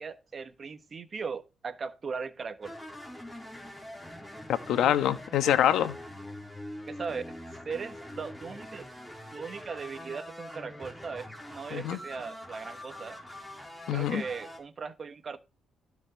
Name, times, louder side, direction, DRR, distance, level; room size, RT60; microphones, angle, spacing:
voice 1, 0.0-2.7 5.4-5.6 6.9-7.2 7.6-8.9 9.3-13.2 13.9-15.4, right 5 dB, 40° right, 1.4 m, -38 dB
sound 1, 2.6-14.6, left 1 dB, 5° left, 4.2 m, -44 dB
voice 2, 4.5-5.9 11.7-12.0 13.9-14.2, left 11 dB, 80° left, 1.3 m, -25 dB
16.0 x 5.4 x 4.0 m
cardioid pair, 90°, 0 cm